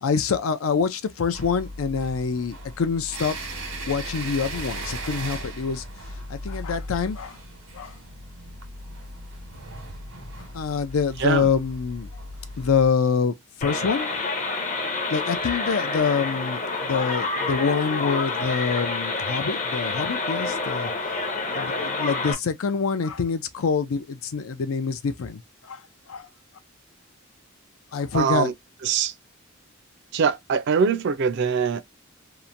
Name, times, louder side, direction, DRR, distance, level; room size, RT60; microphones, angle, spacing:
voice 1, 0.0-3.4 3.9-5.8 6.3-7.4 7.7-8.0 10.5-12.1 12.6-14.1 15.1-20.9 21.2-25.8 26.1-26.3 27.9-28.5, left 5 dB, 80° left, 0.5 m, -26 dB
sound 1, 1.3-12.9, right 1 dB, 85° right, 1.2 m, -37 dB
sound 2, 13.6-22.3, left 3 dB, 40° left, 0.6 m, -28 dB
voice 2, 28.1-28.5 28.8-29.1 30.1-31.8, right 6 dB, 55° right, 0.4 m, -23 dB
2.9 x 2.1 x 2.4 m
head